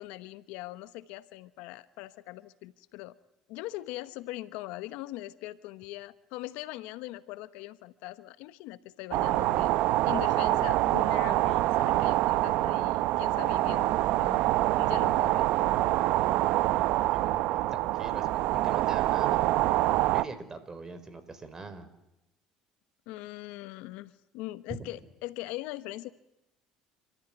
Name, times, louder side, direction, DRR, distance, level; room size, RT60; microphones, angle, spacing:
voice 1, 0.0-3.1 3.5-9.7 10.0-14.4 14.8-15.5 23.1-26.1, left 17 dB, 80° left, 14 dB, 1.1 m, -41 dB
sound 1, 9.1-20.2, right 16 dB, 70° right, 0.8 m, -26 dB
voice 2, 16.9-19.5 20.1-21.9 24.7-24.8, right 3 dB, 25° right, 12 dB, 4.6 m, -43 dB
30.0 x 14.0 x 9.9 m, 0.90 s
supercardioid pair, 85°, 2 cm